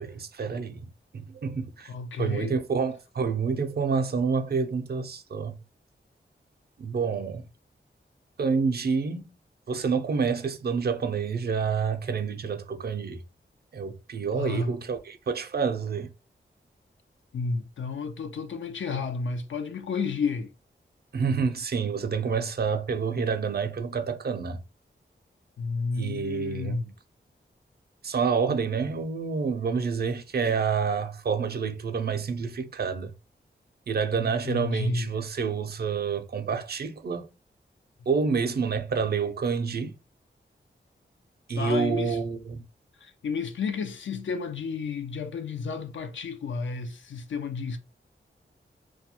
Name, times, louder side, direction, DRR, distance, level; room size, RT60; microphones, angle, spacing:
voice 1, 0.0-1.9 2.2-5.5 6.8-7.4 8.4-9.3 9.7-13.2 13.7-16.1 21.1-24.6 26.0-26.8 28.0-33.1 33.9-37.3 38.1-39.9 41.5-42.6, right 5 dB, 55° right, 0.4 m, -28 dB
voice 2, 1.9-2.5 14.3-14.7 17.3-20.5 25.6-26.9 34.1-35.1 41.5-42.2 43.0-47.8, left 4 dB, 75° left, 0.4 m, -31 dB
2.3 x 2.0 x 2.8 m
wide cardioid pair, 65°, 20 cm